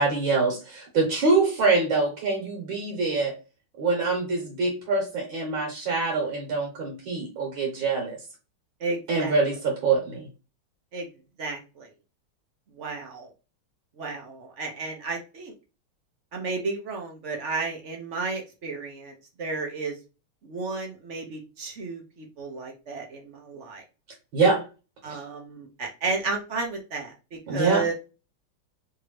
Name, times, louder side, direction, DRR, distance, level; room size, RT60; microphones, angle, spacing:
voice 1, 0.0-3.3 3.8-8.2 9.1-10.3 24.3-24.7 25.1-25.2 27.5-27.8, right 3 dB, 70° right, 0 dB, 1.9 m, -24 dB
voice 2, 8.8-9.3 10.9-11.1 11.4-11.9 12.8-13.3 14.0-15.5 16.3-19.1 19.4-20.0 20.4-23.8 25.0-27.9, right 3 dB, 55° right, 1 dB, 0.8 m, -32 dB
3.7 x 2.8 x 3.1 m, 0.31 s
omnidirectional pair, 2.3 m